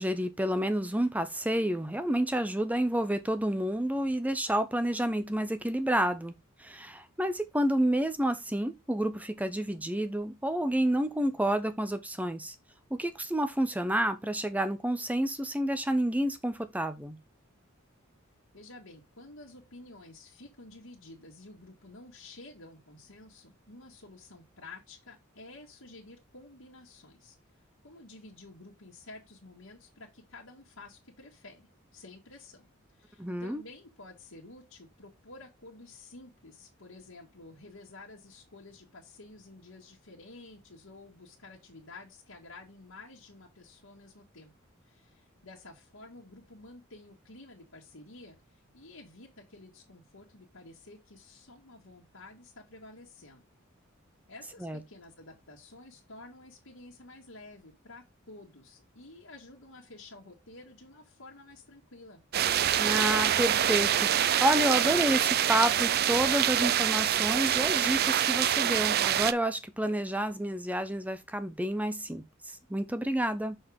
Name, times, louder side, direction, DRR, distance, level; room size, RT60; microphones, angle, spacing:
voice 1, 0.0-6.3 6.6-12.5 12.9-17.2 33.2-33.6 54.6-54.8 62.8-73.6, right 1 dB, 5° right, 0.8 m, -29 dB
voice 2, 18.5-27.4 27.8-32.7 32.9-44.5 44.9-53.5 54.3-62.2, left 2 dB, 75° left, 1.9 m, -51 dB
sound 1, 62.3-69.3, right 10 dB, 50° right, 0.4 m, -26 dB
6.4 x 5.6 x 3.6 m
head